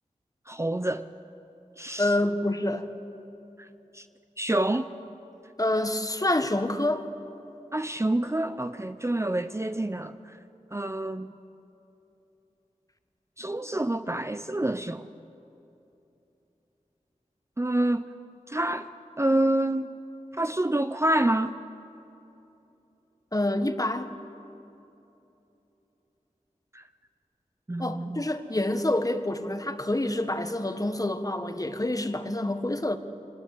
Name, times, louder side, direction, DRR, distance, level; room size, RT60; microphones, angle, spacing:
voice 1, 0.5-1.1 1.8-2.1 3.9-4.1 4.4-4.9 7.7-10.4 10.7-11.3 13.4-15.1 17.6-18.1 18.5-18.9 19.2-19.9 20.3-21.5 26.7-26.8 27.7-28.3, right 1 dB, 20° right, 0.6 m, -27 dB
voice 2, 2.0-2.9 5.6-7.0 23.3-24.1 27.8-33.0, left 1 dB, 25° left, 1.4 m, -27 dB
24.5 x 19.5 x 8.4 m
wide cardioid pair, 50°, 14 cm